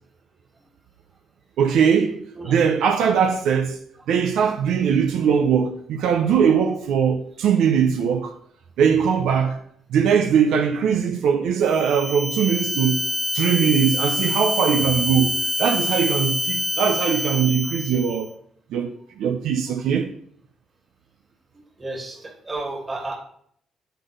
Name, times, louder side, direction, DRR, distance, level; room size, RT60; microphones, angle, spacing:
voice 1, 1.6-2.2 2.5-3.8 4.1-8.3 8.8-9.6 9.9-13.1 13.3-18.3 18.7-20.1, right 7 dB, 85° right, 0.7 m, -20 dB
sound 1, 11.6-18.2, left 1 dB, 25° left, 0.8 m, -26 dB
voice 2, 21.8-23.2, right 2 dB, 25° right, 2.4 m, -32 dB
8.3 x 4.0 x 5.3 m
cardioid pair, 90°, 0 cm